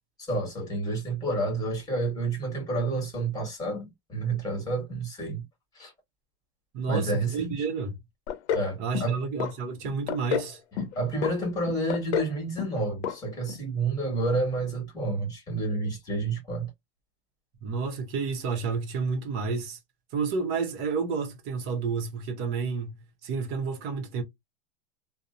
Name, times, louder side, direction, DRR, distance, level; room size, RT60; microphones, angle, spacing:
voice 1, 0.2-5.4 5.7-5.9 6.9-7.5 8.5-9.2 10.8-16.7, right 2 dB, 10° left, 1.3 m, -29 dB
voice 2, 6.7-8.0 8.8-10.6 17.6-19.8 20.1-24.2, right 5 dB, 35° right, 0.7 m, -30 dB
sound 1, 8.3-8.7 8.9-9.5 9.8-10.5 10.8-11.3 11.7-12.3 12.6-12.8 13.0-13.2 13.5-13.6, left 8 dB, 75° left, 0.6 m, -29 dB
2.7 x 2.0 x 2.4 m
supercardioid pair, 150°, 33 cm